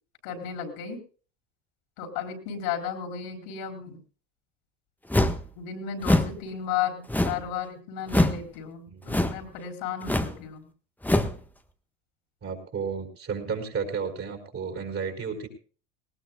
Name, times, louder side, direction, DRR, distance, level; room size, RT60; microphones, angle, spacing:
voice 1, 0.2-1.0 2.0-4.0 5.6-10.7, left 8 dB, 70° left, 6 dB, 4.4 m, -34 dB
sound 1, 5.1-5.5 6.0-6.4 7.1-7.5 8.1-8.4 9.1-9.5 10.0-10.4 11.0-11.4, left 1 dB, 5° left, 1.4 m, -23 dB
voice 2, 12.4-15.5, right 5 dB, 35° right, 5 dB, 4.6 m, -32 dB
19.0 x 19.0 x 2.3 m, 0.38 s
hypercardioid pair, 80°, 38 cm